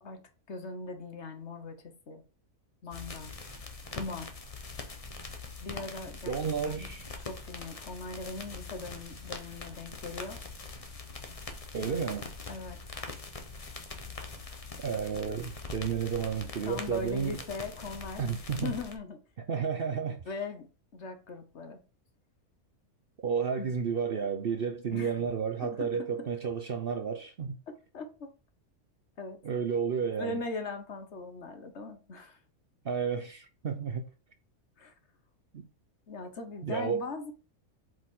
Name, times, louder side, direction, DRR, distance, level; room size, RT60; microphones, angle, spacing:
voice 1, 0.0-2.2 2.8-3.4 3.9-4.3 5.6-6.3 6.6-6.9 7.2-10.4 11.9-12.0 12.5-12.8 16.6-18.2 18.6-19.2 20.3-21.8 23.6-23.7 24.9-25.3 25.6-26.3 27.9-28.3 29.2-29.4 30.1-32.4 34.8-34.9 36.1-37.3, left 3 dB, 55° left, 1.3 m, -40 dB
sound 1, 2.9-19.0, left 3 dB, 25° left, 1.0 m, -43 dB
voice 2, 6.3-7.0 11.7-12.3 14.8-17.4 18.2-18.7 19.5-20.2 23.2-27.6 29.4-30.4 32.8-34.1 35.5-35.6 36.6-37.1, right 6 dB, 50° right, 0.8 m, -32 dB
7.6 x 5.1 x 3.7 m
omnidirectional pair, 1.5 m